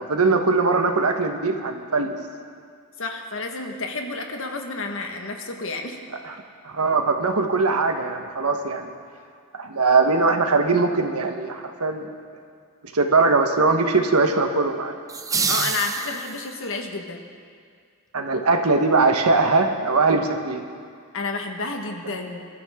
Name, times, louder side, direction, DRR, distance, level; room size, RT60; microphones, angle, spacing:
voice 1, 0.0-2.1 6.2-6.3 6.6-8.9 9.6-12.1 12.9-14.9 18.1-20.6, right 3 dB, 80° right, 4 dB, 1.4 m, -21 dB
voice 2, 3.0-6.0 15.5-17.2 21.1-22.5, left 3 dB, 60° left, 3 dB, 1.6 m, -30 dB
sound 1, 15.1-16.7, right 5 dB, 15° right, 0.5 m, -26 dB
26.0 x 12.5 x 3.8 m, 2.1 s
head